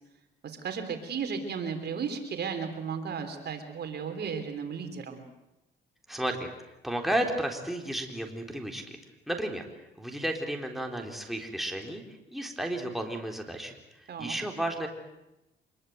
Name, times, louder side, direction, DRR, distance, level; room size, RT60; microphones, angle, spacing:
voice 1, 0.4-5.3 14.1-14.4, right 6 dB, 55° right, 6 dB, 3.6 m, -34 dB
voice 2, 6.1-6.5 6.8-9.0 9.3-9.6 10.0-12.0 12.3-14.9, right 1 dB, ahead, 2 dB, 3.8 m, -33 dB
25.5 x 22.0 x 8.0 m, 0.93 s
cardioid pair, 90°, 20 cm